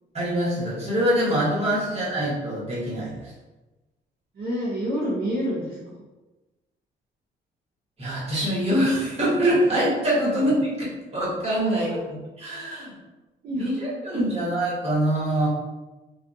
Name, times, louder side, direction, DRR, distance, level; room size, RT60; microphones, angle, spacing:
voice 1, 0.1-3.3 8.0-12.9 13.5-15.5, right 1 dB, 30° right, -7 dB, 1.2 m, -24 dB
voice 2, 4.3-6.0 10.2-10.3 11.6-12.0 13.4-13.7 14.1-14.2, equal, 50° right, -6 dB, 0.6 m, -29 dB
2.4 x 2.2 x 2.6 m, 1.1 s
cardioid pair, 90°, 20 cm